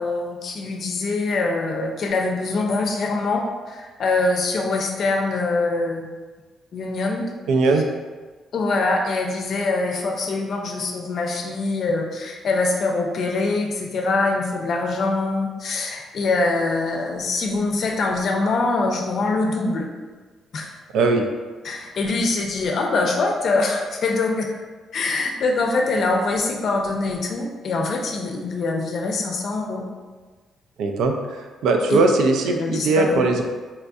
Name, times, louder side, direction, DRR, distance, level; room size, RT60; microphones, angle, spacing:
voice 1, 0.0-6.1 6.7-7.3 7.7-7.8 8.5-19.9 20.5-20.7 21.6-24.5 24.9-29.9 31.9-32.0 32.4-33.2, left 3 dB, 60° left, 2 dB, 0.5 m, -24 dB
voice 2, 7.5-7.8 20.9-21.2 30.8-31.1 31.6-33.4, right 3 dB, 80° right, 4 dB, 0.4 m, -19 dB
4.2 x 2.6 x 2.3 m, 1.4 s
cardioid pair, 90°, 0 cm